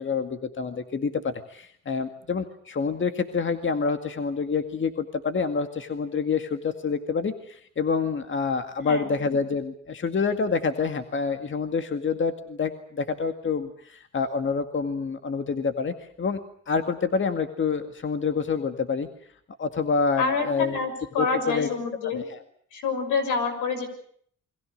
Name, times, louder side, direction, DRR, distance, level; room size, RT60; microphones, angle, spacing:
voice 1, 0.0-19.1 19.6-20.8 21.2-21.7 22.1-22.4, left 5 dB, 40° left, 7 dB, 2.0 m, -27 dB
voice 2, 20.2-22.2 22.7-23.9, left 4 dB, 85° left, 7 dB, 6.6 m, -27 dB
29.0 x 23.0 x 6.6 m, 0.62 s
cardioid pair, 90°, 30 cm